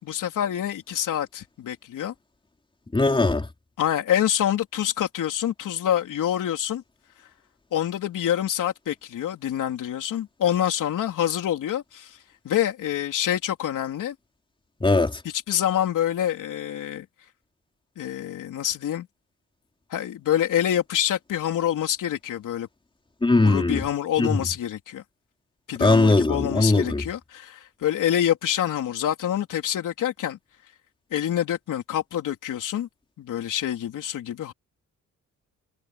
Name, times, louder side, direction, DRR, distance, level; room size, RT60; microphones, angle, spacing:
voice 1, 0.0-2.1 3.8-6.8 7.7-12.2 12.4-14.1 15.2-17.1 18.0-19.1 19.9-22.7 23.4-25.0 25.7-30.4 31.1-32.9 33.2-34.5, left 11 dB, 85° left, 3.8 m, -26 dB
voice 2, 2.9-3.5 14.8-15.2 23.2-23.8 24.2-24.4 25.8-27.0, left 2 dB, 15° left, 4.2 m, -20 dB
cardioid pair, 120°, 31 cm